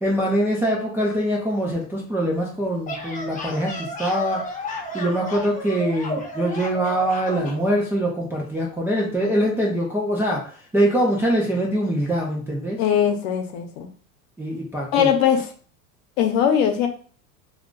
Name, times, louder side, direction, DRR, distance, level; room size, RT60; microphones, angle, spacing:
voice 1, 0.0-4.4 4.9-12.8 14.4-15.1, equal, 5° right, -4 dB, 0.3 m, -23 dB
sound 1, 2.6-7.6, left 1 dB, 15° left, 0.7 m, -33 dB
voice 2, 12.8-13.9 14.9-15.5 16.2-16.9, left 8 dB, 60° left, 5 dB, 0.8 m, -20 dB
2.4 x 2.3 x 3.7 m, 0.42 s
supercardioid pair, 110°, 45 cm